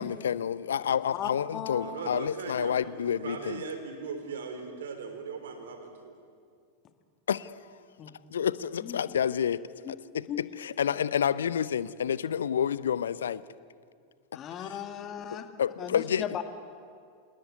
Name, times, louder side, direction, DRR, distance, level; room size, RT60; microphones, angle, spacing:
voice 1, 0.0-3.6 7.3-7.5 8.3-9.6 9.9-10.2 10.6-13.4 15.6-16.2, left 8 dB, 65° left, 19 dB, 0.7 m, -29 dB
voice 2, 1.1-2.1 8.0-8.1 8.8-9.0 9.9-10.0 10.3-10.4 14.3-15.5 15.8-16.4, left 9 dB, 30° left, 8 dB, 2.0 m, -37 dB
voice 3, 1.8-6.1, right 5 dB, 60° right, 7 dB, 3.7 m, -39 dB
27.5 x 19.0 x 9.4 m, 2.2 s
figure-of-eight pair, 90°, 0 cm